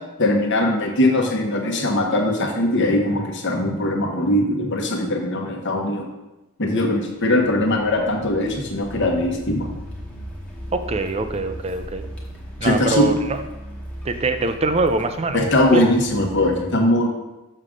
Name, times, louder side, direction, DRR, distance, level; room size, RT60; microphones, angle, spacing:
voice 1, 0.2-6.1 6.6-9.7 12.6-13.1 15.3-17.1, left 1 dB, 55° left, 2 dB, 1.1 m, -20 dB
Car, 7.1-16.6, equal, 5° left, 1.0 m, -37 dB
voice 2, 10.7-12.0 12.6-13.4 14.1-15.9, right 3 dB, 30° right, 9 dB, 0.4 m, -23 dB
6.5 x 6.3 x 3.7 m, 1.0 s
head